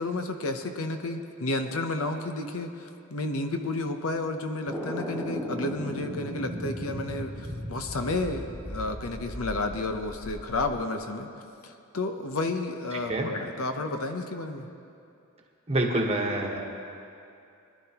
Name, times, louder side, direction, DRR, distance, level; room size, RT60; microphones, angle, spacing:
voice 1, 0.0-11.3 11.6-14.6, left 2 dB, 70° left, 6 dB, 0.8 m, -31 dB
sound 1, 4.7-10.7, equal, 15° left, 2.2 m, -36 dB
voice 2, 12.9-13.3 15.7-16.6, right 1 dB, 30° right, 1 dB, 1.3 m, -27 dB
21.5 x 11.0 x 3.0 m, 2.5 s
head